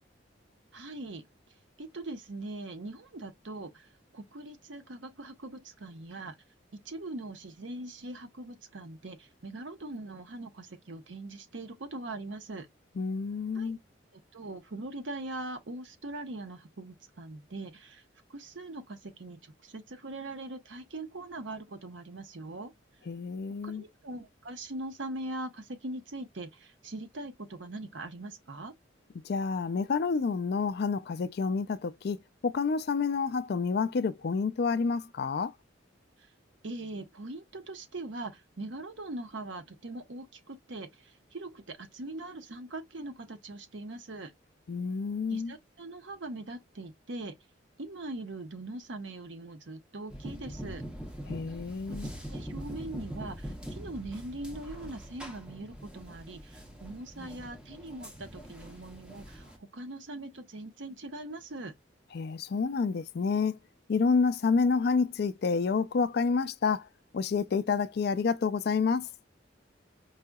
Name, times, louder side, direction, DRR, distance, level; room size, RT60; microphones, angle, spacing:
voice 1, 0.7-1.2 1.8-6.4 6.7-12.7 13.5-13.7 14.3-18.0 18.3-22.7 23.6-28.7 36.2-36.3 36.6-44.3 45.3-47.3 47.8-50.8 51.9-52.0 52.3-61.7, right 2 dB, 75° right, 0.8 m, -41 dB
voice 2, 13.0-13.8 23.1-23.8 29.2-35.5 44.7-45.5 51.3-52.1 62.1-63.6 63.9-66.9 67.1-69.1, left 5 dB, 55° left, 0.4 m, -29 dB
sound 1, 50.1-59.6, equal, 5° right, 0.8 m, -43 dB
4.8 x 2.7 x 2.2 m
head